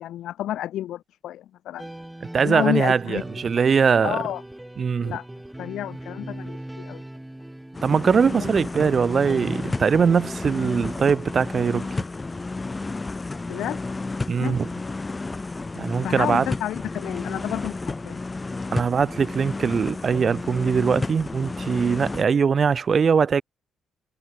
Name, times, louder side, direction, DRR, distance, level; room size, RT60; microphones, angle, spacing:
voice 1, 0.0-1.9 2.4-3.2 3.6-3.7 4.0-4.4 5.0-5.3 5.6-7.0 13.5-13.8 14.4-14.6 16.0-18.2, left 12 dB, 85° left, 0.8 m, -30 dB
sound 1, 1.8-11.0, right 1 dB, 5° right, 6.4 m, -39 dB
voice 2, 2.3-4.2 4.8-5.2 7.8-11.9 14.3-14.7 15.8-16.4 18.7-23.4, right 6 dB, 35° right, 0.4 m, -21 dB
sound 2, 7.7-22.2, left 3 dB, 20° left, 2.0 m, -32 dB
cardioid pair, 145°, 0 cm